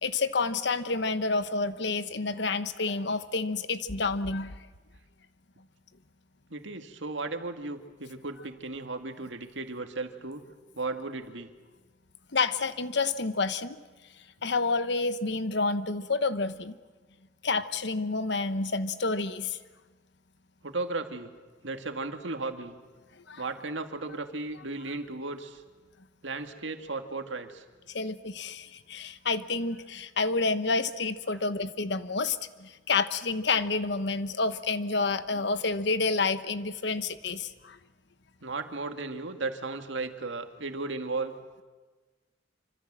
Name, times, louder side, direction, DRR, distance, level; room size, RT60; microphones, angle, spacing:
voice 1, 0.0-4.6 12.3-13.8 14.4-16.7 17.4-19.6 23.1-23.4 27.9-37.8, left 3 dB, 65° left, 12 dB, 1.1 m, -29 dB
voice 2, 6.5-10.4 10.7-11.5 20.6-21.3 21.6-22.8 23.4-25.6 26.2-27.6 38.4-41.3, right 3 dB, 80° right, 6 dB, 2.1 m, -35 dB
26.5 x 25.5 x 7.5 m, 1.3 s
head